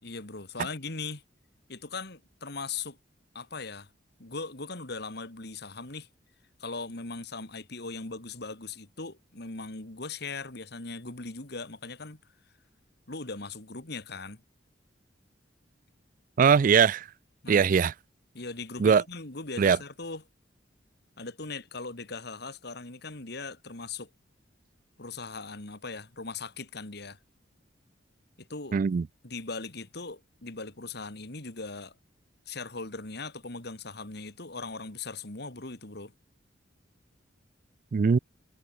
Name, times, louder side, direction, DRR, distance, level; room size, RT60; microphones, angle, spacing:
voice 1, 0.0-1.2 1.7-3.0 3.3-3.9 4.2-6.1 6.6-12.2 13.1-14.4 17.4-17.7 18.3-20.2 21.2-24.1 25.0-27.2 28.4-28.8 29.2-31.9 32.5-36.1, left 3 dB, 60° left, 2.7 m, -39 dB
voice 2, 16.4-17.0 17.5-17.9 18.8-19.0 19.6-19.8 28.7-29.0 37.9-38.2, right 6 dB, 45° right, 0.3 m, -21 dB
head